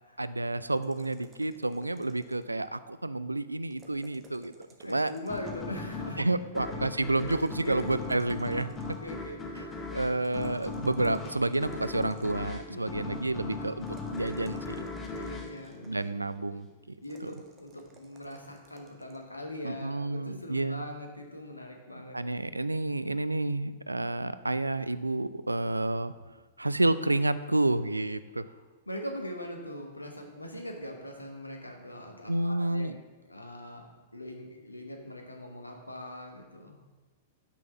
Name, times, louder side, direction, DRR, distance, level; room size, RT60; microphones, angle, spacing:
voice 1, 0.2-4.5 4.8-5.1 6.2-8.7 9.6-14.9 15.8-16.7 17.2-17.3 19.6-20.8 22.1-26.1 26.6-28.4 32.3-33.0, right 2 dB, 85° right, 14 dB, 0.3 m, -30 dB
sound 1, 0.8-2.6 3.7-5.7 7.2-9.2 10.2-12.6 13.8-16.0 17.0-19.2, right 4 dB, 20° right, 1.1 m, -58 dB
voice 2, 4.8-6.2 7.2-7.4 7.6-7.9 8.4-8.5 9.0-9.8 12.7-13.1 15.1-15.9 17.0-22.4 28.5-28.6 28.9-32.9 33.2-33.9 34.1-36.8, left 1 dB, 85° left, 2 dB, 1.2 m, -41 dB
sound 2, 5.3-16.6, left 4 dB, 20° left, 1.1 m, -39 dB
6.0 x 5.8 x 6.9 m, 1.2 s
figure-of-eight pair, 100°, 0 cm